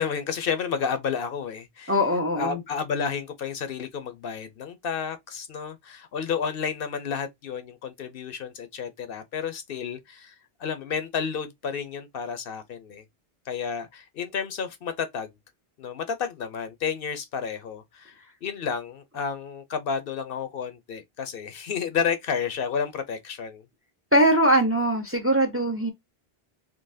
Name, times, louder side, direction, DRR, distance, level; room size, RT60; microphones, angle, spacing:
voice 1, 0.0-2.0 2.4-13.0 13.5-15.3 15.8-23.6, left 6 dB, 70° left, 0.8 m, -31 dB
voice 2, 1.9-2.6 24.1-25.9, equal, 15° right, 0.5 m, -21 dB
3.8 x 2.8 x 2.6 m
omnidirectional pair, 1.0 m